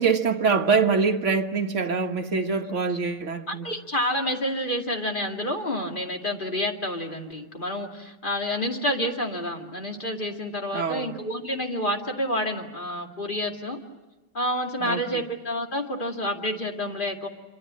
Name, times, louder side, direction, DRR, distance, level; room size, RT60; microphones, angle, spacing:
voice 1, 0.0-3.7 10.7-11.2 14.8-15.3, right 5 dB, 40° right, 3 dB, 1.6 m, -24 dB
voice 2, 3.5-13.8 14.3-17.3, equal, 25° left, 2 dB, 2.4 m, -29 dB
27.5 x 25.0 x 7.6 m, 1.1 s
omnidirectional pair, 2.2 m